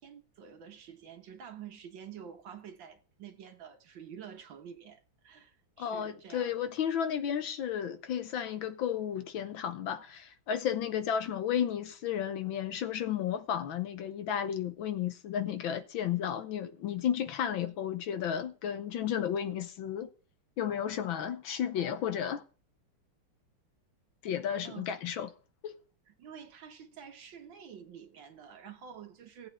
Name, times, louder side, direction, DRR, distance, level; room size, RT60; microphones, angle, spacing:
voice 1, 0.0-6.5 24.6-24.9 26.1-29.5, right 8 dB, 65° right, 1.8 m, -48 dB
voice 2, 5.8-20.1 20.6-22.4 24.2-25.3 25.6-25.8, left 9 dB, 70° left, 1.5 m, -33 dB
16.5 x 8.0 x 3.5 m
omnidirectional pair, 2.4 m